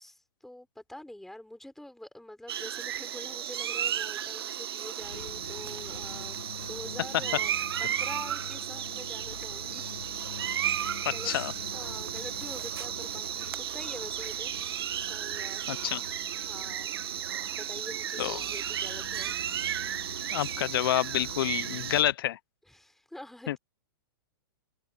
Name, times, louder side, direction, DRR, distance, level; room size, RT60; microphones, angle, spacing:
voice 1, 0.0-7.5 7.8-9.9 10.5-11.4 11.6-14.5 15.1-15.7 16.4-16.9 17.5-19.3 22.7-23.6, left 1 dB, ahead, 4.8 m, -46 dB
sound 1, 2.5-22.0, right 10 dB, 80° right, 1.1 m, -34 dB
sound 2, 5.0-22.1, left 7 dB, 90° left, 2.0 m, -47 dB
voice 2, 15.7-16.0 18.2-18.4 20.3-22.4 23.5-23.6, left 13 dB, 65° left, 0.7 m, -28 dB
hypercardioid pair, 135°, 13 cm